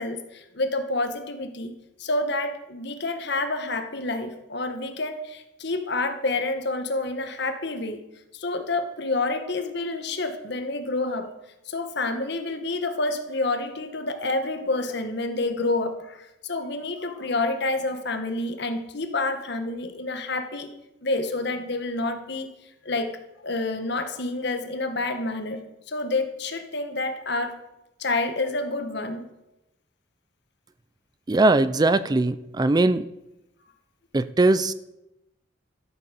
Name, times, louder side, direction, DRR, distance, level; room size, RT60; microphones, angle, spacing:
voice 1, 0.0-8.0 8.3-11.3 11.6-20.7 21.0-22.5 22.8-23.2 23.4-27.6 28.0-29.3, left 2 dB, 60° left, 7 dB, 1.5 m, -28 dB
voice 2, 31.3-33.1 34.1-34.7, right 2 dB, 20° right, 15 dB, 0.4 m, -20 dB
13.0 x 8.5 x 6.8 m, 0.92 s
head